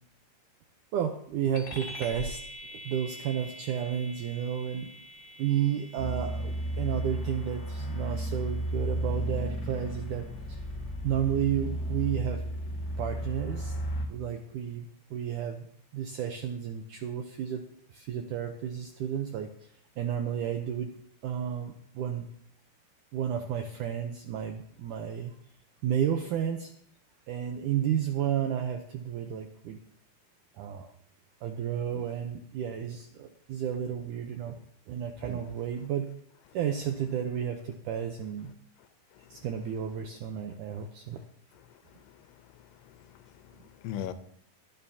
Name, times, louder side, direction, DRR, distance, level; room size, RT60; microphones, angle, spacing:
voice 1, 0.9-2.4 2.7-4.9 5.4-10.6 11.0-12.4 13.0-13.7 14.1-15.7 15.9-19.5 20.0-20.9 21.2-22.3 23.1-25.3 25.8-26.7 27.3-29.8 30.6-30.9 31.4-34.6 34.9-36.1 36.5-38.5 39.3-41.2, right 9 dB, 85° right, 1.8 m, -32 dB
sound 1, 1.5-11.4, left 1 dB, 30° left, 3.3 m, -46 dB
sound 2, 6.0-14.1, right 1 dB, 50° left, 1.1 m, -33 dB
voice 2, 41.7-42.3 42.5-44.1, left 10 dB, 85° left, 2.9 m, -42 dB
23.5 x 9.5 x 2.8 m
omnidirectional pair, 4.7 m